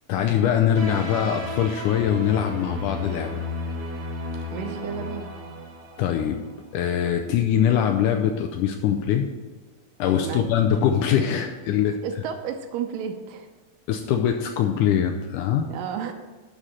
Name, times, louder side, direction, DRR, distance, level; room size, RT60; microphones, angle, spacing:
voice 1, 0.1-3.5 6.0-6.4 6.7-9.3 10.0-11.9 13.9-15.7, left 9 dB, 80° left, 4 dB, 1.9 m, -22 dB
sound 1, 0.7-6.5, left 2 dB, 50° right, 1.1 m, -34 dB
voice 2, 4.5-5.3 10.2-10.6 11.8-13.5 15.7-16.1, right 8 dB, 75° right, 7 dB, 2.1 m, -32 dB
11.0 x 5.1 x 5.6 m, 1.3 s
omnidirectional pair, 4.1 m